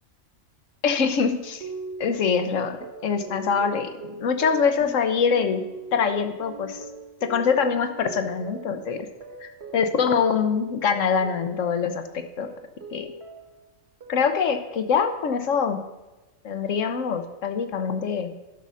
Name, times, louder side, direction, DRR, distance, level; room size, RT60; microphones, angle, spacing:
voice 1, 0.8-1.7 2.0-2.8 3.0-5.6 5.9-6.8 7.2-9.1 9.4-12.5 12.9-13.1 14.1-15.8 16.4-18.3, left 6 dB, 80° left, 8 dB, 1.3 m, -24 dB
sound 1, 1.6-12.0 12.4-13.6 14.0-14.5, right 3 dB, 55° right, 1.8 m, -41 dB
11.5 x 6.2 x 5.6 m, 1.1 s
omnidirectional pair, 1.3 m